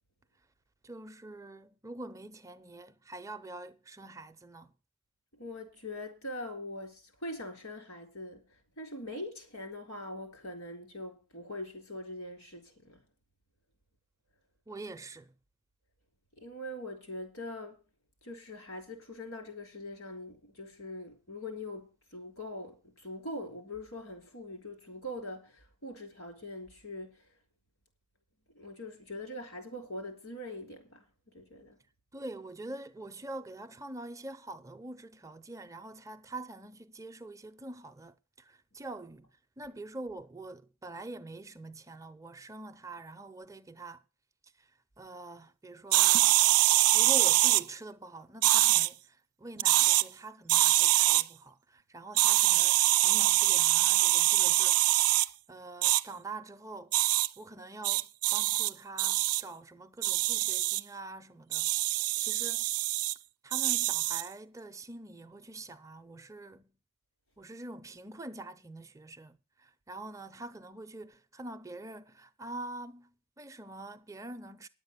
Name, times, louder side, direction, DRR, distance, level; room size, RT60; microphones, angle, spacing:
voice 1, 0.8-4.7 14.7-15.3 32.1-39.3 39.6-44.0 44.6-44.7 45.0-46.3 46.9-55.1 55.5-56.9 57.4-61.7 62.2-62.7 63.4-66.6 67.4-73.1 73.4-74.7, right 2 dB, 15° right, 0.5 m, -45 dB
voice 2, 5.3-13.0 16.4-17.8 18.2-27.3 28.5-31.8, left 1 dB, 70° left, 3.8 m, -42 dB
sound 1, 45.9-47.6 48.4-48.9 49.6-50.0 50.5-51.2 52.2-55.3 55.8-56.0 56.9-57.3 57.8-58.7 59.0-59.4 60.0-60.8 61.5-63.1 63.5-64.3, right 16 dB, 85° right, 0.5 m, -24 dB
10.0 x 8.1 x 6.7 m
head